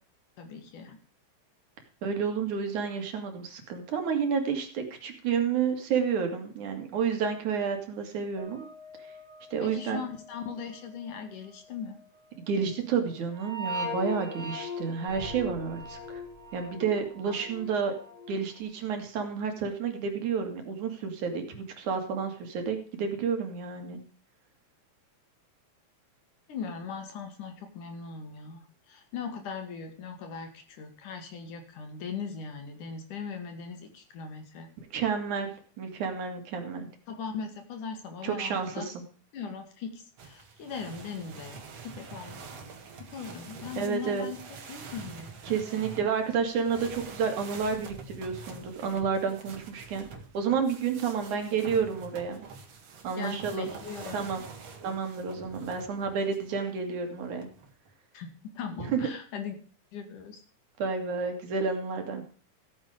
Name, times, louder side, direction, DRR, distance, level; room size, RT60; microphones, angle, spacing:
voice 1, 0.4-1.0 9.6-12.0 26.5-34.7 37.1-38.9 39.3-42.6 43.0-44.4 44.7-45.6 51.3-51.5 53.2-54.3 58.1-59.6 59.9-60.4, left 6 dB, 80° left, 6 dB, 3.7 m, -39 dB
voice 2, 2.0-8.7 9.5-10.0 12.5-16.2 16.5-17.9 18.3-24.0 34.9-35.5 35.8-36.9 38.2-39.0 43.8-44.3 45.4-50.1 50.3-52.5 53.0-53.7 54.1-54.4 54.8-57.5 58.9-59.0 60.8-62.3, right 6 dB, 70° right, 5 dB, 3.6 m, -30 dB
sound 1, 8.4-12.8 13.1-18.6, left 1 dB, 20° right, 3.2 m, -41 dB
sound 2, 15.1-17.3, equal, 50° left, 3.9 m, -48 dB
sound 3, 40.2-56.5 57.2-57.9, right 5 dB, 55° right, 2.9 m, -46 dB
15.0 x 8.9 x 5.0 m, 0.42 s
omnidirectional pair, 3.6 m